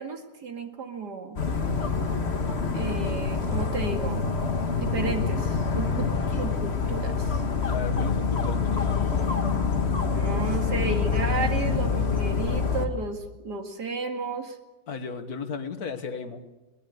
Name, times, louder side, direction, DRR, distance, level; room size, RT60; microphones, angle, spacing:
voice 1, 0.0-1.4 2.7-4.2 4.8-6.1 6.4-7.4 10.1-14.6, right 4 dB, 85° right, 5 dB, 2.8 m, -33 dB
Dog, 1.4-12.9, left 5 dB, 40° left, 1.8 m, -26 dB
voice 2, 7.7-8.9 14.9-16.6, left 5 dB, 65° left, 9 dB, 2.0 m, -35 dB
21.5 x 20.0 x 8.0 m, 1.1 s
omnidirectional pair, 1.7 m